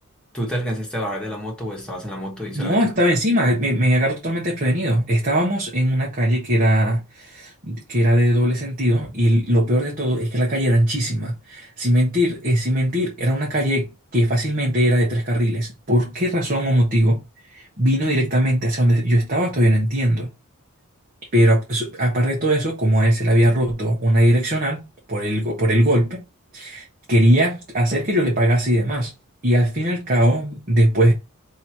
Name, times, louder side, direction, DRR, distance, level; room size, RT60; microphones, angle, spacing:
voice 1, 0.3-2.8, equal, 5° left, 1.5 m, -28 dB
voice 2, 2.5-13.9 14.1-20.3 21.3-26.3 26.5-29.1 29.4-31.1, equal, 40° right, 1.0 m, -20 dB
3.1 x 2.8 x 4.5 m
head